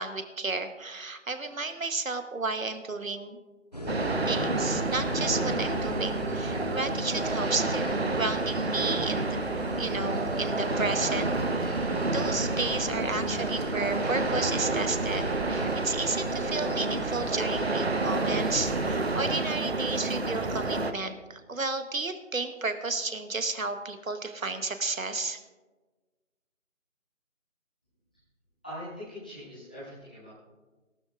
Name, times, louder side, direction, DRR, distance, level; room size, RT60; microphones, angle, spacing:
voice 1, 0.0-3.4 4.3-9.4 9.8-25.4, right 3 dB, 80° right, 9 dB, 1.3 m, -32 dB
sound 1, 3.7-19.2, equal, 30° left, 0.8 m, -38 dB
sound 2, 3.9-20.9, right 3 dB, 50° right, 0.7 m, -29 dB
voice 2, 28.6-30.3, equal, 5° left, -13 dB, 1.5 m, -42 dB
18.5 x 12.5 x 2.5 m, 1.2 s
figure-of-eight pair, 170°, 40 cm